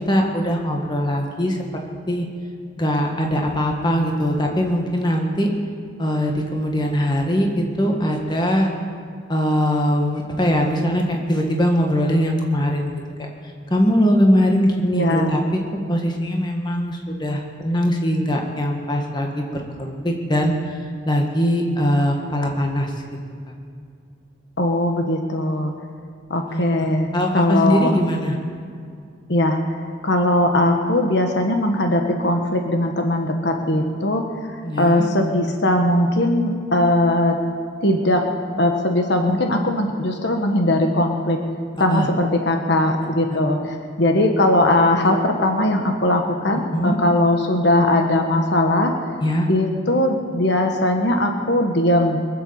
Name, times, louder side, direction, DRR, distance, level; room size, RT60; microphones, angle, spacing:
voice 1, 0.1-1.6 2.1-2.3 2.8-5.5 6.0-8.7 9.3-12.9 13.7-15.4 15.9-19.5 19.8-20.5 21.1-22.9 26.5-26.6 27.1-28.3 34.6-35.1 39.5-39.6 41.7-42.1 46.7-47.0 49.2-49.5, equal, 20° left, 1 dB, 1.7 m, -21 dB
voice 2, 14.9-15.4 24.6-25.7 26.3-27.1 27.3-27.9 29.3-34.2 34.8-37.4 37.8-38.2 38.6-41.4 41.8-48.9 49.5-52.2, left 1 dB, 60° left, 4 dB, 1.3 m, -19 dB
22.5 x 8.0 x 7.1 m, 2.3 s
head